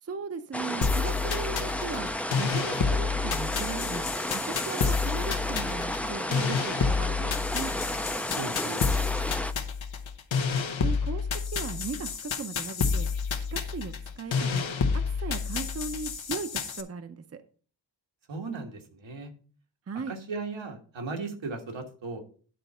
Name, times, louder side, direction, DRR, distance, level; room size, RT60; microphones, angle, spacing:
voice 1, 0.0-2.1 2.4-4.0 4.3-7.7 10.8-13.1 13.5-14.7 15.1-17.4 19.9-20.2, right 5 dB, 35° right, 9 dB, 0.6 m, -37 dB
sound 1, 0.5-9.5, left 1 dB, 5° left, 0.4 m, -32 dB
sound 2, 0.8-16.8, left 5 dB, 85° left, 1.0 m, -29 dB
voice 2, 8.3-8.8 18.3-19.3 20.1-22.2, right 3 dB, 80° right, 3 dB, 1.7 m, -36 dB
10.5 x 4.0 x 5.5 m, 0.42 s
wide cardioid pair, 105°, 45 cm